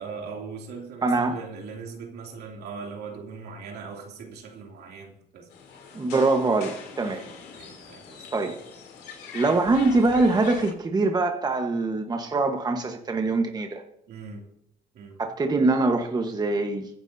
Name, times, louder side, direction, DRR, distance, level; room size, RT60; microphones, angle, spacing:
voice 1, 0.0-5.5 7.0-8.3 14.1-14.5 14.9-15.2, right 5 dB, 75° right, 1 dB, 2.8 m, -40 dB
voice 2, 1.0-1.4 5.9-7.2 8.3-8.6 9.3-13.8 15.2-16.9, right 3 dB, 25° right, 4 dB, 1.2 m, -23 dB
sound 1, 5.5-10.7, left 6 dB, 75° left, 3.1 m, -42 dB
22.5 x 11.0 x 2.7 m, 0.73 s
cardioid pair, 110°, 17 cm